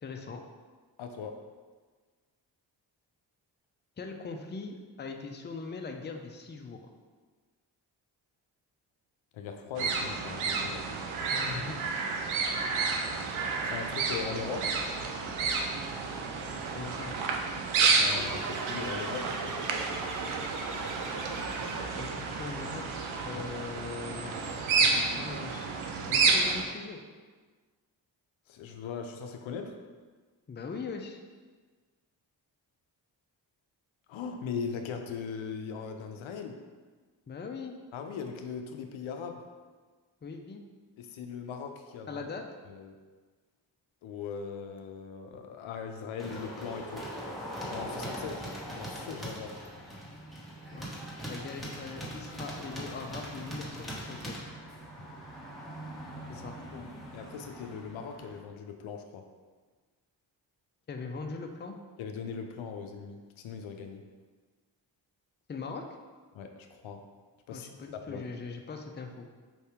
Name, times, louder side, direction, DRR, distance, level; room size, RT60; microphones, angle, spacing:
voice 1, 0.0-0.4 4.0-6.9 11.3-11.8 16.7-17.1 21.9-22.8 23.2-25.7 26.1-27.0 30.5-31.2 37.3-37.7 40.2-40.6 42.1-42.4 50.7-50.9 51.2-54.3 56.3-56.5 60.9-61.8 65.5-65.8 67.5-69.3, left 4 dB, 25° left, 4 dB, 0.5 m, -40 dB
voice 2, 1.0-1.4 9.3-10.9 13.6-14.8 17.7-19.3 23.3-23.6 28.5-29.8 34.1-36.6 37.9-39.4 41.0-42.2 42.7-43.0 44.0-47.1 47.7-48.4 48.7-49.6 56.3-59.2 62.0-64.0 66.3-67.0 67.5-67.7 68.1-68.3, left 6 dB, 75° left, 5 dB, 0.5 m, -39 dB
sound 1, 9.8-26.6, right 4 dB, 85° right, 0.6 m, -30 dB
sound 2, 18.0-22.2, right 3 dB, 40° right, 0.6 m, -38 dB
sound 3, 46.2-58.4, equal, ahead, 1.2 m, -41 dB
4.9 x 2.7 x 3.4 m, 1.4 s
supercardioid pair, 40°, 47 cm